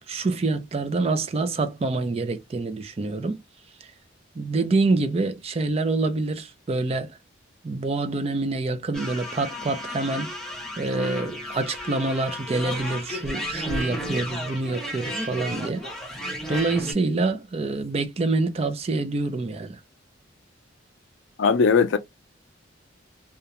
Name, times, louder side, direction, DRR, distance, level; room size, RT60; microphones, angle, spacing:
voice 1, 0.1-3.4 4.4-7.2 7.6-10.3 10.8-15.8 16.5-19.8, right 3 dB, 30° right, 0.4 m, -26 dB
sound 1, 8.9-16.9, equal, ahead, 0.6 m, -33 dB
voice 2, 21.4-22.0, left 5 dB, 75° left, 0.4 m, -19 dB
2.4 x 2.1 x 2.8 m
head